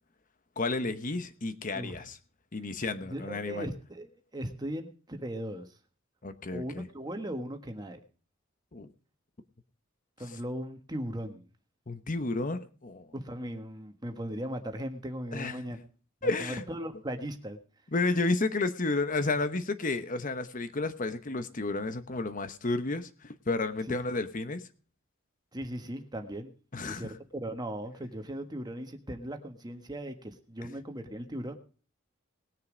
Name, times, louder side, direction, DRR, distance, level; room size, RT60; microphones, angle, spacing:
voice 1, 0.6-2.2 2.5-3.7 6.2-6.9 8.7-8.9 11.9-13.1 15.3-15.6 16.2-16.6 17.9-24.6 26.7-27.1, left 3 dB, 40° left, 11 dB, 1.0 m, -31 dB
voice 2, 3.0-5.7 6.5-8.0 10.2-11.4 13.1-15.8 16.2-17.6 25.5-26.5 26.9-31.5, right 1 dB, 20° right, 5 dB, 1.5 m, -38 dB
20.0 x 6.7 x 5.1 m, 0.39 s
head